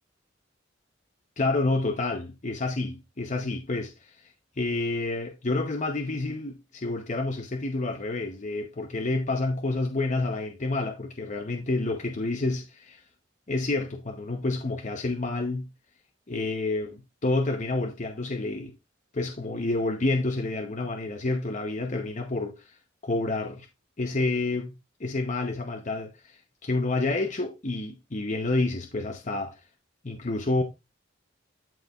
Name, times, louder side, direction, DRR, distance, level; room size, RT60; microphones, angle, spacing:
voice 1, 1.4-4.1 4.6-13.0 13.5-15.7 16.3-18.7 19.1-22.7 23.0-23.7 24.0-24.7 25.0-29.6 30.0-30.6, left 2 dB, 40° left, 0.9 m, -29 dB
13.5 x 4.8 x 2.4 m
head